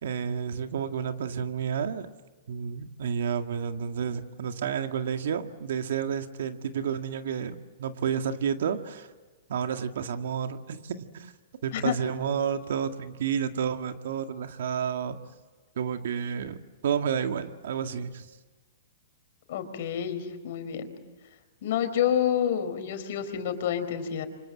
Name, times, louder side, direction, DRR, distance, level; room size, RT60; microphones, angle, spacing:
voice 1, 0.0-2.1 2.5-9.1 9.5-11.3 11.6-15.2 15.8-16.6 16.8-18.3, right 7 dB, 75° right, 7 dB, 2.0 m, -30 dB
voice 2, 19.5-20.9 21.6-24.3, left 9 dB, 60° left, 9 dB, 4.4 m, -28 dB
28.5 x 25.5 x 7.7 m, 1.3 s
hypercardioid pair, 130°, 0 cm